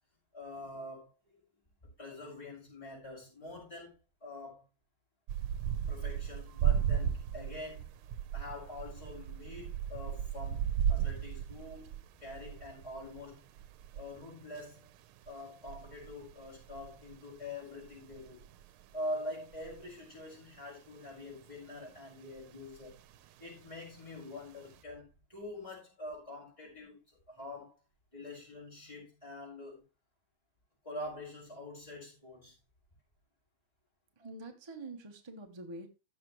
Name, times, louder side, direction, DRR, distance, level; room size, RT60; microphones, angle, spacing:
voice 1, 0.3-1.3 2.0-3.9 4.2-4.6 5.9-7.9 8.3-13.4 13.9-14.9 15.3-18.5 18.9-23.0 23.4-26.9 27.3-27.8 28.1-29.8 30.8-32.6 34.2-34.3, left 1 dB, 15° left, 4.7 m, -45 dB
sound 1, 5.3-20.6 21.1-22.0 22.4-23.7 23.9-24.8, right 9 dB, 85° right, 1.5 m, -36 dB
voice 2, 34.2-35.9, right 2 dB, 25° right, 0.5 m, -46 dB
15.0 x 6.0 x 3.1 m
omnidirectional pair, 2.3 m